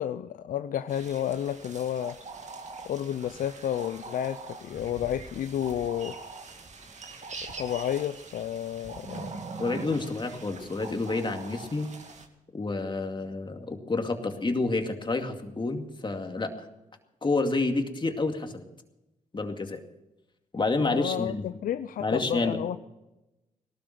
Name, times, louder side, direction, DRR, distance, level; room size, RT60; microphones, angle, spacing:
voice 1, 0.0-2.2 2.8-6.2 7.6-9.3 20.8-22.8, left 10 dB, 75° left, 11 dB, 0.5 m, -31 dB
sound 1, 0.9-12.3, right 3 dB, 55° right, 2.1 m, -43 dB
voice 2, 9.6-11.9 12.5-16.5 17.2-18.6 19.3-19.8 20.5-21.5 22.0-22.8, left 3 dB, 35° left, 5 dB, 2.3 m, -29 dB
18.0 x 12.5 x 5.9 m, 0.97 s
cardioid pair, 60°, 14 cm